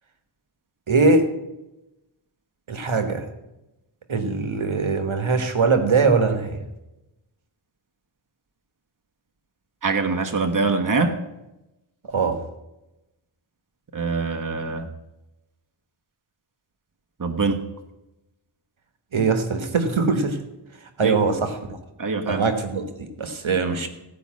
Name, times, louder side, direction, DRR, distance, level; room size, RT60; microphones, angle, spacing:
voice 1, 0.9-1.3 2.7-3.2 4.1-6.6 12.1-12.4 19.1-20.4 21.0-21.8 22.3-23.9, right 4 dB, 75° right, 7 dB, 1.3 m, -22 dB
voice 2, 9.8-11.2 13.9-14.9 17.2-17.6 21.0-21.2 22.0-22.4, right 4 dB, 40° right, 4 dB, 1.2 m, -23 dB
15.5 x 5.3 x 7.5 m, 0.96 s
wide cardioid pair, 60°, 48 cm